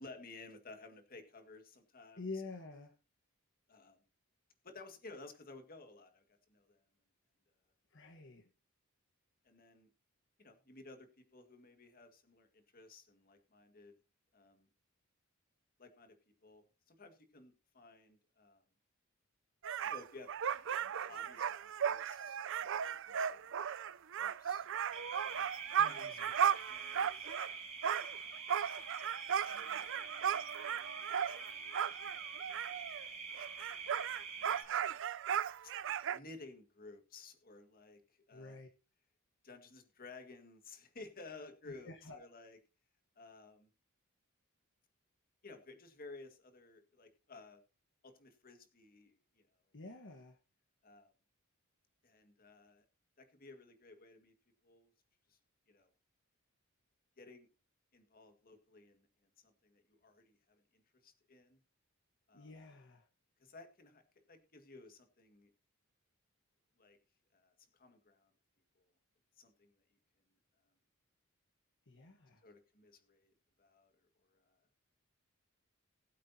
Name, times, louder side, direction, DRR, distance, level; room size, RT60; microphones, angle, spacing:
voice 1, 0.0-2.3 3.7-4.0 4.6-6.8 9.4-9.9 10.4-13.9 14.3-14.7 15.8-16.2 16.4-18.6 19.8-20.3 21.0-23.8 24.2-24.8 25.3-25.5 25.8-26.3 26.7-27.3 28.2-28.5 29.4-30.5 32.0-32.9 34.3-34.7 35.6-35.7 36.1-38.6 39.4-42.6 43.2-43.7 45.4-47.6 48.0-49.5 50.8-51.1 52.0-52.8 53.2-54.3 54.6-54.9 55.3-55.4 55.7-55.9 57.2-57.5 57.9-59.1 59.4-61.6 62.3-62.5 63.4-65.5 66.8-67.0 67.3-68.3 68.8-68.9 69.4-69.7 72.4-73.3 73.6-74.6, left 3 dB, 45° left, 1.9 m, -56 dB
voice 2, 2.2-2.9 7.9-8.5 25.6-26.3 38.3-38.7 41.6-42.2 49.7-50.4 62.3-63.1 71.9-72.4, left 3 dB, 60° left, 1.4 m, -48 dB
sound 1, 19.6-27.5 27.8-33.1 33.4-36.2, right 8 dB, 60° right, 0.5 m, -36 dB
sound 2, 24.9-34.6, right 5 dB, 30° right, 2.4 m, -46 dB
20.0 x 8.4 x 2.8 m
head